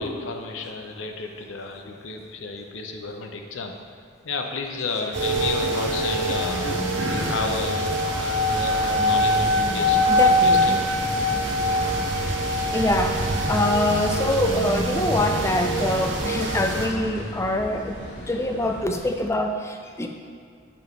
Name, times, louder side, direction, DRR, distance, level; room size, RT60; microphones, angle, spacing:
voice 1, 0.0-3.8 4.2-6.6 7.1-7.9 8.2-10.9, left 4 dB, 85° left, 4 dB, 0.6 m, -32 dB
sound 1, 5.1-16.9, equal, 75° right, 0.8 m, -24 dB
sound 2, 6.3-17.3, right 1 dB, 45° right, 0.9 m, -35 dB
sound 3, 9.2-19.1, equal, 60° left, 1.4 m, -40 dB
voice 2, 10.1-10.8 11.7-11.8 12.7-18.0 18.3-20.1, left 1 dB, 15° left, 4 dB, 0.4 m, -25 dB
6.9 x 3.1 x 5.1 m, 2.2 s
head